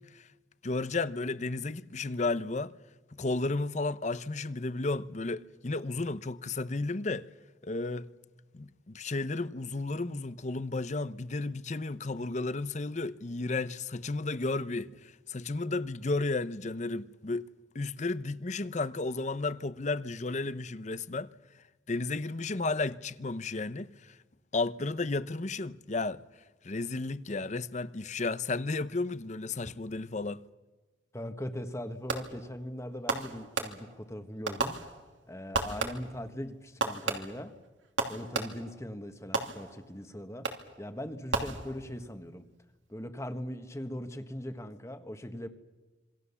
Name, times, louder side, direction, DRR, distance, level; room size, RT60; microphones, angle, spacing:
voice 1, 0.6-2.7 3.1-7.3 7.6-8.1 8.5-17.5 17.7-21.3 21.9-24.2 24.5-26.2 26.6-30.4, left 3 dB, 40° left, 0.7 m, -33 dB
voice 2, 31.1-34.8 35.3-37.5 38.1-40.5 40.8-42.4 42.9-45.5, equal, 15° left, 1.4 m, -40 dB
Fireworks, 32.1-32.5 33.1-34.1 34.5-35.2 35.5-36.2 36.8-38.8 39.3-40.0 40.4-40.8 41.3-42.1, right 3 dB, 90° right, 2.8 m, -34 dB
26.5 x 24.5 x 7.1 m
head